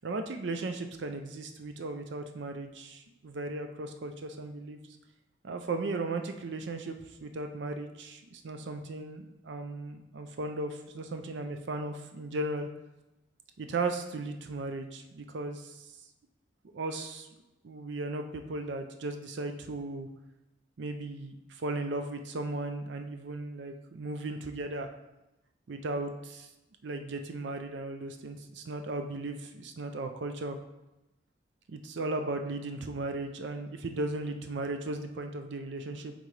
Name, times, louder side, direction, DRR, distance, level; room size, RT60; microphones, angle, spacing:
voice 1, 0.0-4.8 5.4-12.7 13.6-15.9 16.7-17.3 17.6-20.1 20.8-24.9 25.7-26.5 26.8-30.6 31.7-36.1, right 2 dB, 80° right, 6 dB, 0.5 m, -36 dB
8.2 x 3.9 x 3.3 m, 0.99 s
head